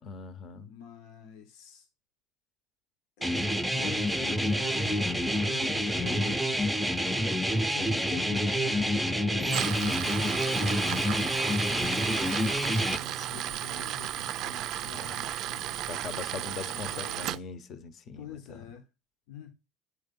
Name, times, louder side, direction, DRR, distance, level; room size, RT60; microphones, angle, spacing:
voice 1, 0.0-0.7 12.9-13.7 14.8-15.3 15.9-18.6, left 5 dB, 40° left, 0.9 m, -42 dB
voice 2, 0.6-1.9 3.2-6.6 7.7-13.0 13.3-15.8 16.3-17.3 18.2-18.9 19.3-19.5, left 9 dB, 75° left, 1.1 m, -46 dB
sound 1, 3.2-13.0, equal, ahead, 0.7 m, -28 dB
Tools, 9.4-17.4, right 12 dB, 55° right, 0.4 m, -34 dB
9.5 x 3.3 x 5.4 m
supercardioid pair, 125°, 0 cm